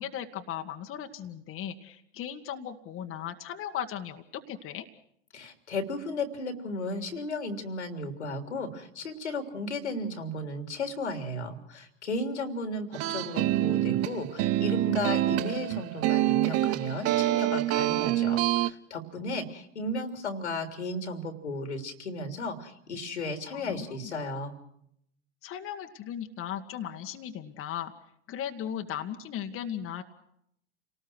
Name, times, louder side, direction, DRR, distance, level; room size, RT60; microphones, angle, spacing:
voice 1, 0.0-4.9 23.5-24.1 25.4-27.9 28.3-30.0, left 10 dB, 40° left, 5 dB, 1.8 m, -37 dB
voice 2, 5.3-24.6, left 2 dB, 85° left, 7 dB, 3.4 m, -34 dB
sound 1, 12.9-18.7, right 14 dB, 45° right, 1.0 m, -26 dB
29.0 x 19.0 x 6.2 m, 0.72 s
hypercardioid pair, 85°, 34 cm